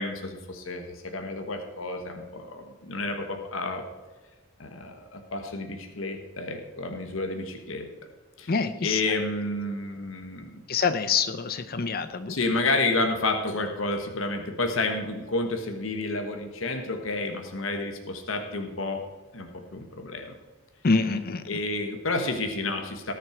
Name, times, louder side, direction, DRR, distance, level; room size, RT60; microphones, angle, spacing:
voice 1, 0.0-3.8 4.6-7.9 8.4-8.5 8.8-10.6 12.3-19.0 19.3-20.3 21.5-23.1, left 2 dB, 70° left, 5 dB, 1.5 m, -30 dB
voice 2, 8.5-9.0 10.7-12.4 20.8-21.4, left 4 dB, 45° left, 11 dB, 0.6 m, -26 dB
18.5 x 6.6 x 4.6 m, 1.3 s
head